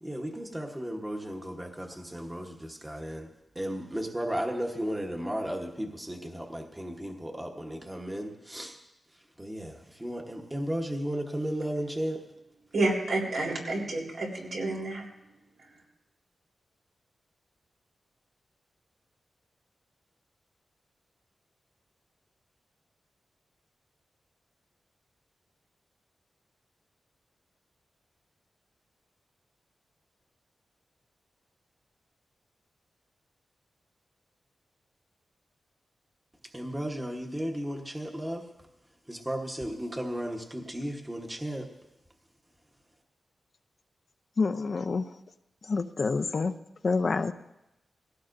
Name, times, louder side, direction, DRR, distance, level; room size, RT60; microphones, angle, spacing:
voice 1, 0.0-8.8 9.4-12.2 36.5-38.5 39.1-41.7, equal, 15° right, 1.1 m, -34 dB
voice 2, 12.7-15.0 15.6-15.7, right 2 dB, 80° right, 3.9 m, -29 dB
voice 3, 44.4-45.1 45.6-46.5 46.8-47.3, left 4 dB, 50° left, 0.5 m, -27 dB
18.5 x 16.5 x 2.6 m
wide cardioid pair, 100°, 0 cm